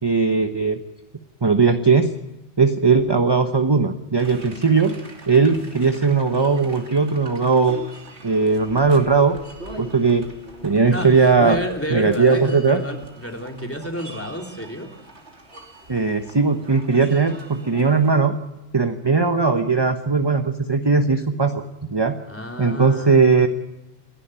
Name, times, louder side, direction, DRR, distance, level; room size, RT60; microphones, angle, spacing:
voice 1, 0.0-0.8 1.4-2.1 2.6-5.0 5.3-7.8 8.2-9.4 9.8-10.3 10.6-11.6 11.9-12.8 15.9-18.4 18.7-22.2 22.6-23.5, right 4 dB, 25° right, 7 dB, 1.0 m, -18 dB
sound 1, 4.2-18.1, right 2 dB, 70° right, 3.1 m, -43 dB
voice 2, 10.9-14.9 22.3-23.5, equal, 10° left, 2 dB, 3.0 m, -30 dB
29.0 x 11.5 x 8.9 m, 0.99 s
omnidirectional pair, 1.2 m